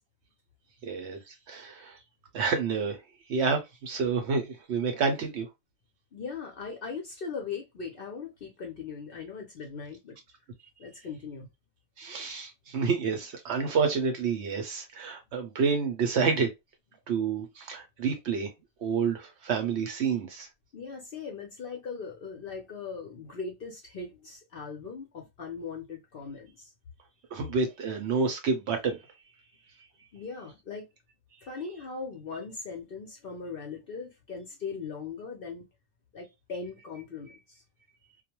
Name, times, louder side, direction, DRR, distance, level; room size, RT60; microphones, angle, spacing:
voice 1, 0.8-2.0 2.3-3.0 3.3-5.5 12.0-16.5 17.1-18.5 18.8-20.5 27.3-29.0, right 5 dB, 65° right, 0.8 m, -29 dB
voice 2, 6.1-10.2 10.8-11.5 20.7-26.7 30.1-30.9 31.4-35.6 36.1-37.6, left 5 dB, 55° left, 0.6 m, -39 dB
2.3 x 2.1 x 2.8 m
omnidirectional pair, 1.4 m